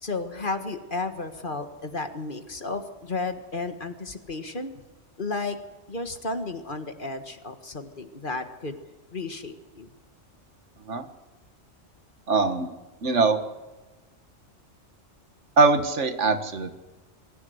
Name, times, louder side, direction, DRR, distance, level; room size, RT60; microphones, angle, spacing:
voice 1, 0.0-4.7 5.2-5.6 5.9-8.8 9.1-9.9, left 3 dB, 45° left, 8 dB, 1.8 m, -33 dB
voice 2, 12.3-12.7 13.0-13.4 15.6-16.8, right 4 dB, 75° right, 9 dB, 1.9 m, -22 dB
22.5 x 15.5 x 7.9 m, 1.1 s
omnidirectional pair, 1.2 m